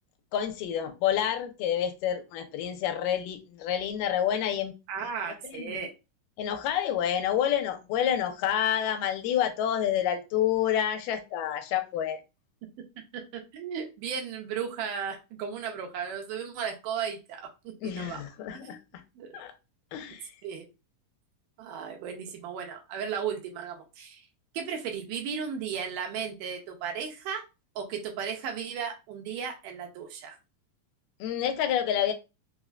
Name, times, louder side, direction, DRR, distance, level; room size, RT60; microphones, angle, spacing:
voice 1, 0.3-4.7 5.5-5.8 6.4-12.2 17.8-18.8 19.3-19.5 19.9-20.3 31.2-32.1, left 10 dB, 85° left, 2.2 m, -28 dB
voice 2, 4.9-5.9 13.1-18.2 18.5-18.8 19.2-19.4 20.4-20.7 21.6-24.3 24.5-27.4 27.8-30.4, right 7 dB, 85° right, 2.2 m, -35 dB
5.2 x 2.1 x 2.4 m
omnidirectional pair, 3.8 m